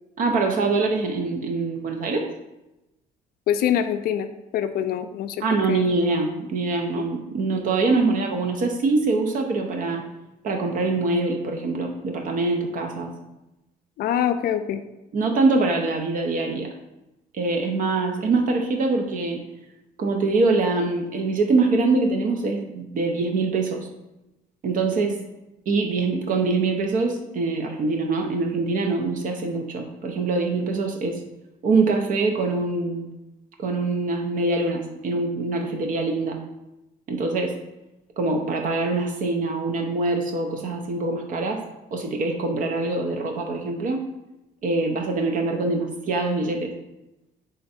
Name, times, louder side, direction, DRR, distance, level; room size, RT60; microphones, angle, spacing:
voice 1, 0.2-2.3 5.4-10.0 10.4-13.1 15.1-16.7 17.3-19.4 20.0-23.9 24.6-25.2 25.7-31.2 31.6-33.1 33.6-36.4 37.1-37.5 38.2-41.6 41.9-44.0 44.6-46.7, right 3 dB, 50° right, 3 dB, 0.6 m, -24 dB
voice 2, 3.5-5.9 6.9-7.0 14.0-14.8, left 9 dB, 60° left, 9 dB, 0.4 m, -25 dB
3.8 x 3.4 x 4.1 m, 0.96 s
cardioid pair, 110°, 17 cm